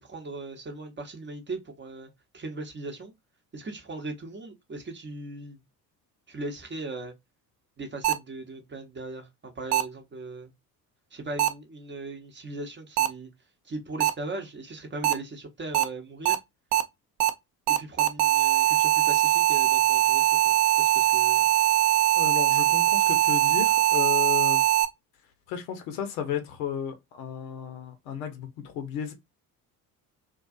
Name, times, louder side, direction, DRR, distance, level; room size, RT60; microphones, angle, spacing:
voice 1, 0.0-2.1 2.3-3.1 3.5-5.6 6.3-7.1 7.8-10.5 11.1-13.3 13.6-16.4 17.7-21.5, right 2 dB, 25° right, 0.8 m, -38 dB
sound 1, 8.0-8.1 9.7-9.8 11.4-11.5 13.0-13.1 14.0-14.1 15.0-15.1 15.7-15.8 16.3-16.4 16.7-16.8 17.2-17.3 17.7-24.9, right 11 dB, 55° right, 0.5 m, -21 dB
voice 2, 22.1-24.6 25.5-29.1, left 9 dB, 70° left, 0.8 m, -33 dB
2.3 x 2.3 x 2.4 m
figure-of-eight pair, 55°, 49 cm